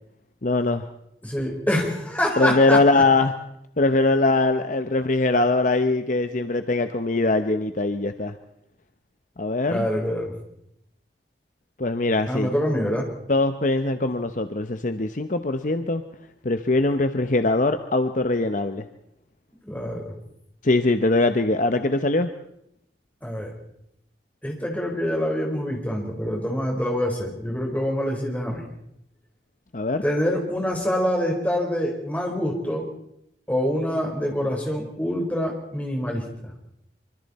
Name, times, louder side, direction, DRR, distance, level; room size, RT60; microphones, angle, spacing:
voice 1, 0.4-0.9 2.4-3.3 3.8-8.3 9.4-9.9 11.8-12.5 13.3-16.0 16.4-18.8 20.6-22.3 29.7-30.0, left 2 dB, 45° left, 9 dB, 0.9 m, -22 dB
voice 2, 1.2-3.0 9.7-10.3 12.3-13.0 19.6-20.1 23.2-23.5 24.4-28.6 30.0-32.9 33.5-36.5, equal, 10° left, 0 dB, 4.4 m, -26 dB
25.0 x 25.0 x 4.3 m, 0.77 s
head